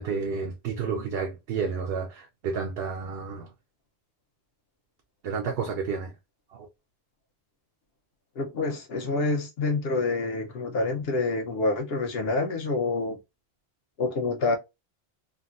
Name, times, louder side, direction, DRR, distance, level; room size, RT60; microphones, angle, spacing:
voice 1, 0.0-3.5 5.2-6.1 6.5-6.7, right 5 dB, 70° right, 0.8 m, -31 dB
voice 2, 8.4-13.2 14.0-14.6, left 3 dB, 65° left, 1.1 m, -27 dB
3.4 x 2.2 x 2.4 m
omnidirectional pair, 1.1 m